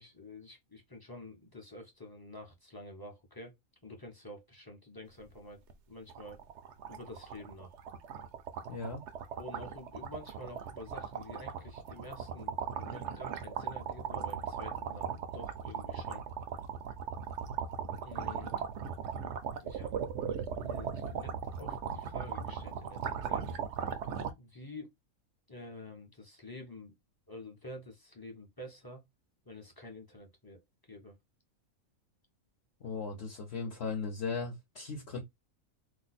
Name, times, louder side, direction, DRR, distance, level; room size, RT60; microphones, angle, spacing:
voice 1, 0.0-3.5 3.8-6.4 6.9-7.7 9.3-16.2 18.0-18.6 19.6-19.9 20.6-23.5 24.4-24.9 25.5-27.0 27.3-29.0 29.4-31.2, left 1 dB, 25° left, 0.5 m, -48 dB
sound 1, 5.2-5.4 5.7-5.8 6.1-24.3, right 7 dB, 65° right, 0.8 m, -38 dB
voice 2, 8.7-9.0 32.8-35.2, left 4 dB, 55° left, 0.9 m, -37 dB
2.7 x 2.2 x 4.0 m
omnidirectional pair, 1.4 m